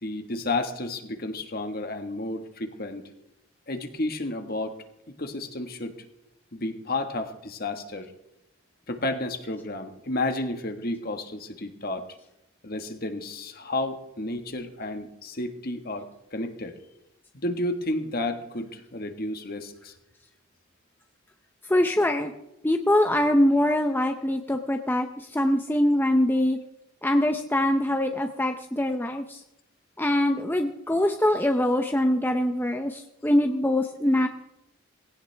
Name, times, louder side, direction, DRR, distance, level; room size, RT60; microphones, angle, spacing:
voice 1, 0.0-3.1 3.7-5.9 6.5-8.1 8.9-12.1 12.6-16.8 17.3-19.9, left 2 dB, 45° left, 6 dB, 1.6 m, -32 dB
voice 2, 21.7-22.3 22.6-26.6 27.0-29.4 30.0-34.3, left 1 dB, 10° left, 5 dB, 0.6 m, -23 dB
19.0 x 17.0 x 3.4 m, 0.86 s
head